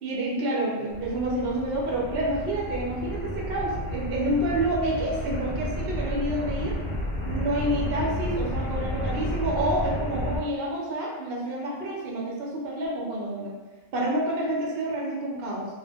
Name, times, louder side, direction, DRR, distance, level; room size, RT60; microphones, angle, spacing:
voice 1, 0.0-6.8 7.3-13.5 13.9-15.7, right 1 dB, 55° right, -3 dB, 0.8 m, -28 dB
sound 1, 0.9-10.4, equal, 60° left, 0.9 m, -31 dB
2.3 x 2.1 x 3.3 m, 1.2 s
omnidirectional pair, 1.3 m